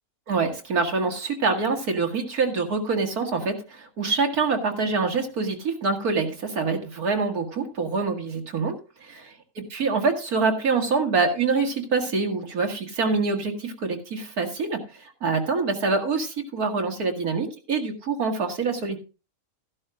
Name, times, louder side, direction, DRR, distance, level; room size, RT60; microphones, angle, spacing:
voice 1, 0.3-8.8 9.1-9.2 9.6-19.0, right 4 dB, 85° right, 3 dB, 2.6 m, -25 dB
14.5 x 12.0 x 2.5 m, 0.32 s
omnidirectional pair, 1.5 m